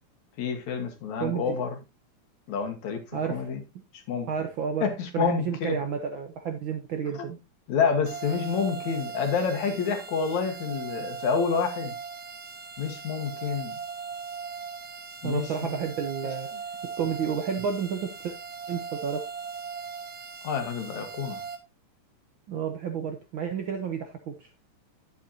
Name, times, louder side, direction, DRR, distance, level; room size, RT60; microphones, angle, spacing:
voice 1, 0.4-1.7 2.5-3.0 3.3-3.6 4.1-4.3 4.8-5.8 7.7-11.9 12.8-13.7 15.2-15.8 20.4-21.4, left 6 dB, 75° left, 2.9 m, -28 dB
voice 2, 1.2-1.6 3.1-3.5 4.3-4.9 5.1-7.4 15.2-16.5 17.0-18.3 18.7-19.2 22.5-24.5, right 7 dB, 65° right, 1.3 m, -31 dB
sound 1, 8.1-21.6, right 6 dB, 50° right, 1.3 m, -39 dB
10.0 x 8.3 x 2.8 m
omnidirectional pair, 3.3 m